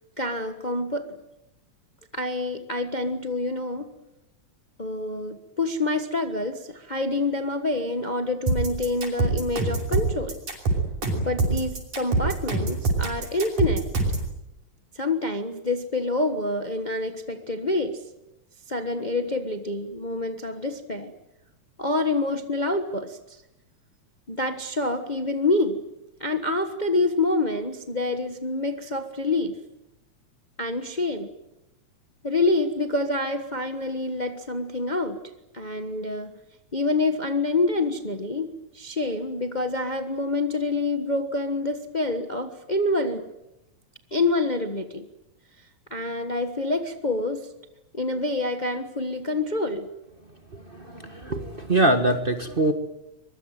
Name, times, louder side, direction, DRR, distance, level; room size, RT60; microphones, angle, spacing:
voice 1, 0.2-1.1 2.1-3.9 4.8-10.4 11.2-13.9 14.9-18.0 18.7-21.1 21.8-23.4 24.3-25.8 26.2-29.6 30.6-31.3 32.2-35.2 35.5-36.4 36.7-38.5 38.7-43.3 44.1-45.1 45.9-47.5 47.9-49.9, left 2 dB, 85° left, 7 dB, 0.4 m, -27 dB
sound 1, 8.5-14.3, right 3 dB, 90° right, 7.3 m, -24 dB
voice 2, 51.1-52.7, right 2 dB, 30° right, 7 dB, 1.0 m, -22 dB
24.0 x 22.5 x 9.1 m, 0.90 s
omnidirectional pair, 3.4 m